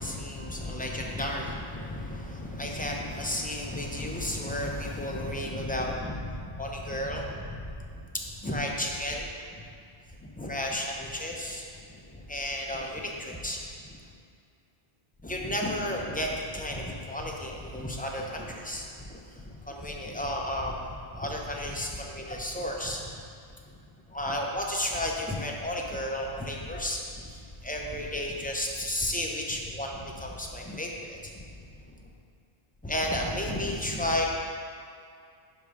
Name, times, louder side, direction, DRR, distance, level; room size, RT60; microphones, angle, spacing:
voice 1, 0.0-7.7 8.4-9.3 10.2-11.6 12.1-13.6 15.2-19.2 19.7-23.0 24.1-31.3 32.8-34.3, left 1 dB, 15° left, -1 dB, 0.4 m, -33 dB
5.3 x 5.2 x 4.7 m, 2.3 s
omnidirectional pair, 1.1 m